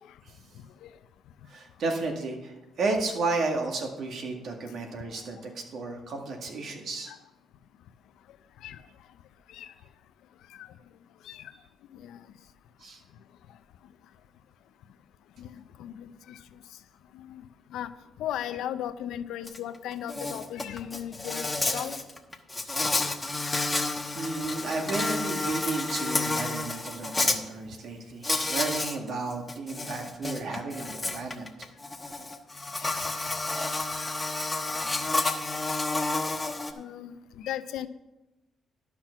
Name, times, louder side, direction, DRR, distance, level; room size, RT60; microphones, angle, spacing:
voice 1, 1.5-7.1 11.5-11.6 12.8-13.0 24.2-31.7, right 3 dB, 65° right, 3 dB, 2.0 m, -33 dB
voice 2, 15.4-16.6 17.1-17.4 17.7-17.9 18.2-21.9 32.8-33.0 33.9-34.1 35.0-35.1 36.0-36.2 36.7-37.9, left 11 dB, 85° left, 13 dB, 0.5 m, -37 dB
Insect, 19.5-19.6 19.9-27.4 28.2-29.0 29.3-36.7, left 2 dB, 15° left, 1.0 m, -30 dB
12.0 x 5.9 x 5.9 m, 1.0 s
cardioid pair, 90°, 0 cm